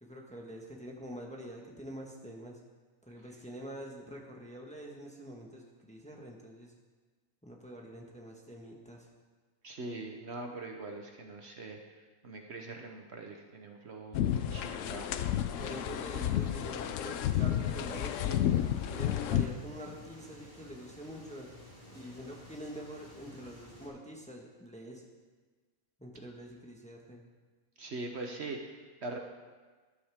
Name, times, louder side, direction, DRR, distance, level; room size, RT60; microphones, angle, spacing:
voice 1, 0.0-2.6 3.1-6.7 7.4-9.1 15.6-18.4 18.9-21.5 21.9-25.1 26.0-27.2, equal, 5° left, -1 dB, 1.3 m, -46 dB
voice 2, 9.6-11.8 12.2-15.1 27.8-29.2, right 2 dB, 55° right, 3 dB, 1.1 m, -42 dB
sound 1, 14.1-19.5, left 10 dB, 70° left, 0.9 m, -31 dB
sound 2, 15.4-23.9, left 1 dB, 35° left, 3.6 m, -53 dB
13.0 x 11.5 x 3.6 m, 1.4 s
omnidirectional pair, 1.4 m